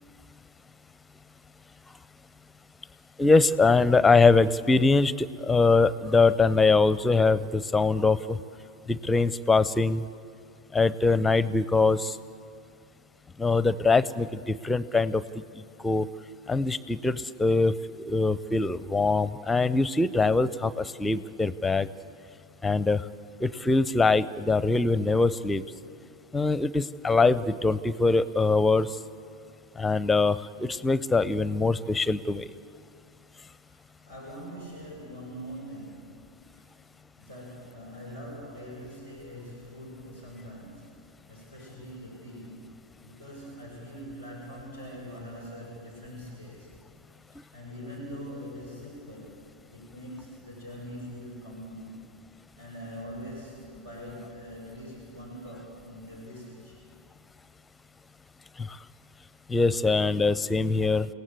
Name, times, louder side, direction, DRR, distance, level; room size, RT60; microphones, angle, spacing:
voice 1, 3.2-8.4 8.9-10.0 10.7-12.2 13.4-15.2 15.5-16.1 16.5-17.7 18.1-21.9 22.6-23.0 23.4-25.6 26.3-28.9 29.8-32.5 58.6-58.8 59.5-61.1, left 3 dB, 10° left, 18 dB, 0.7 m, -23 dB
voice 2, 33.6-36.7 37.2-46.8 47.3-52.1 52.6-56.9, equal, 75° right, -3 dB, 7.7 m, -43 dB
29.0 x 18.0 x 8.2 m, 2.4 s
figure-of-eight pair, 90°, 0 cm